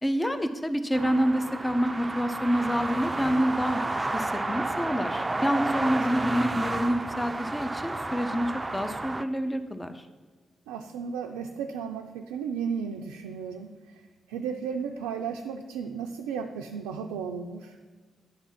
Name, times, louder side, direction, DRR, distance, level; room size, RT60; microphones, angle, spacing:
voice 1, 0.0-10.1, equal, 15° left, 8 dB, 0.6 m, -27 dB
sound 1, 0.9-9.2, right 2 dB, 25° right, 0.4 m, -31 dB
voice 2, 10.7-14.0 14.3-17.8, right 6 dB, 85° right, 3 dB, 0.3 m, -34 dB
9.3 x 3.6 x 5.7 m, 1.4 s
hypercardioid pair, 40°, 0 cm